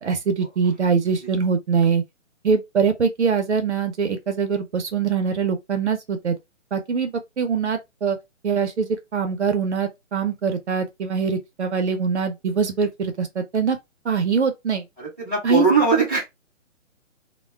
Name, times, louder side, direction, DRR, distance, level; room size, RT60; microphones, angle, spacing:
voice 1, 0.0-2.0 2.4-6.4 6.7-8.2 8.4-13.8 14.0-14.8 15.4-15.6, right 6 dB, 60° right, 0.6 m, -23 dB
voice 2, 15.0-16.2, right 4 dB, 5° left, 0.8 m, -20 dB
2.2 x 2.1 x 3.2 m
hypercardioid pair, 175°, 39 cm